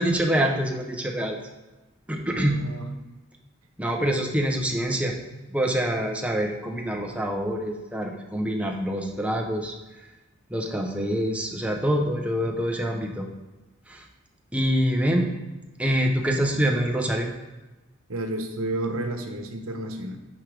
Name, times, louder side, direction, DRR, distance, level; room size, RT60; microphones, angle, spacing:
voice 1, 0.0-1.4 2.1-2.6 3.8-5.1 5.5-9.7 10.5-13.3 13.9-14.0 14.5-15.3 15.8-17.3, equal, 5° right, 1 dB, 0.8 m, -25 dB
voice 2, 2.3-2.9 4.0-4.2 18.1-20.2, right 1 dB, 85° right, 4 dB, 1.0 m, -31 dB
9.6 x 4.7 x 3.4 m, 1.1 s
head